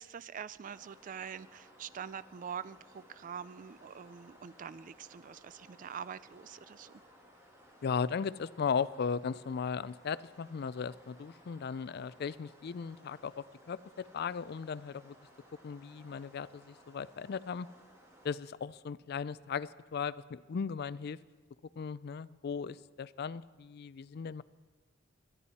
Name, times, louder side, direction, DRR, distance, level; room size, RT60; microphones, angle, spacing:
voice 1, 0.0-6.9, right 7 dB, 40° right, 17 dB, 0.4 m, -44 dB
sound 1, 0.6-18.4, equal, 15° right, 2.2 m, -60 dB
voice 2, 7.8-15.2 15.6-17.7 18.2-21.2 21.8-24.4, left 6 dB, 55° left, 18 dB, 0.4 m, -37 dB
22.0 x 11.0 x 4.2 m, 1.4 s
head